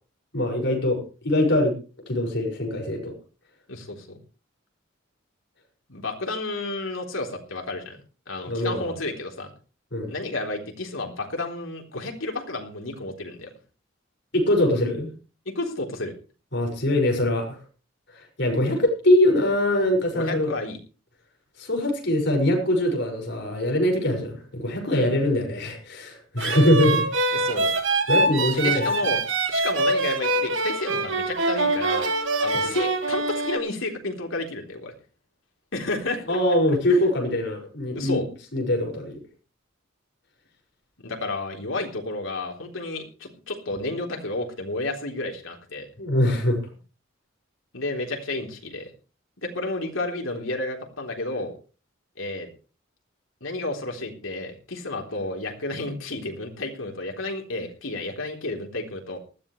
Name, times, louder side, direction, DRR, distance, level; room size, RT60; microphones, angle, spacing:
voice 1, 0.3-1.7 2.1-3.1 8.4-9.0 9.9-10.1 14.3-15.1 16.5-17.6 18.1-20.5 21.6-27.0 28.1-28.9 32.6-32.7 36.3-38.2 38.5-39.2 46.0-46.6, left 1 dB, 60° left, 2 dB, 6.1 m, -23 dB
voice 2, 3.7-4.2 5.9-8.0 8.3-9.5 10.1-13.5 15.5-16.1 20.1-20.8 24.9-25.1 27.3-27.8 28.6-29.2 29.5-32.1 32.4-34.9 35.7-36.4 36.9-37.0 37.9-38.3 41.0-45.9 47.7-48.9 49.4-51.5 52.2-52.5 53.4-59.2, left 2 dB, 80° left, 2 dB, 3.8 m, -31 dB
sound 1, 26.4-33.6, right 2 dB, 70° right, 2.0 m, -24 dB
19.5 x 13.5 x 3.3 m, 0.35 s
head